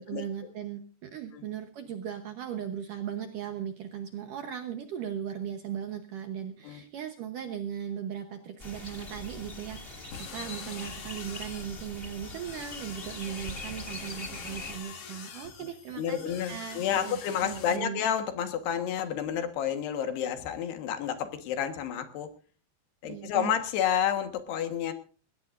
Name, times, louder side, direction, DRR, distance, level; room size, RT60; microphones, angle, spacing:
voice 1, 0.0-16.2 16.5-18.0 23.0-23.5, right 9 dB, 70° right, 6 dB, 2.1 m, -38 dB
sound 1, 8.6-14.8, left 2 dB, 25° left, 1.2 m, -42 dB
sound 2, 10.1-17.8, left 6 dB, 50° left, 1.8 m, -45 dB
voice 2, 16.0-22.3 23.0-24.9, left 9 dB, 70° left, 7 dB, 3.4 m, -30 dB
20.5 x 18.0 x 2.6 m, 0.38 s
omnidirectional pair, 5.0 m